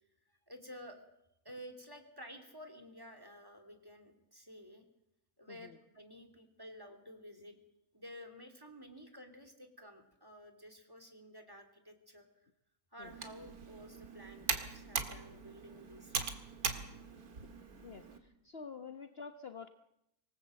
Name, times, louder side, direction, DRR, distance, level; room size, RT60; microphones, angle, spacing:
voice 1, 0.5-1.0 1.4-4.8 5.4-7.6 7.9-12.3 12.9-16.1, equal, 15° right, 6 dB, 2.8 m, -52 dB
Computer keyboard, 13.0-18.2, right 5 dB, 85° right, 2.2 m, -40 dB
voice 2, 18.4-19.7, left 5 dB, 45° left, 7 dB, 1.2 m, -47 dB
25.5 x 18.5 x 7.6 m, 0.82 s
omnidirectional pair, 1.5 m